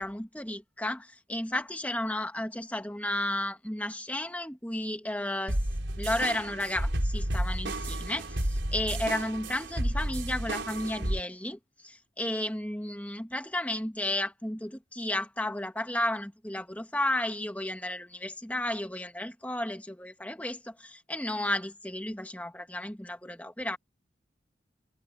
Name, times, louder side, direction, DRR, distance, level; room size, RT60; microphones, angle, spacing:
voice 1, 0.0-5.6 6.0-23.8, left 1 dB, 10° left, 1.9 m, -33 dB
sound 1, 5.5-11.2, right 1 dB, 85° right, 4.4 m, -31 dB
head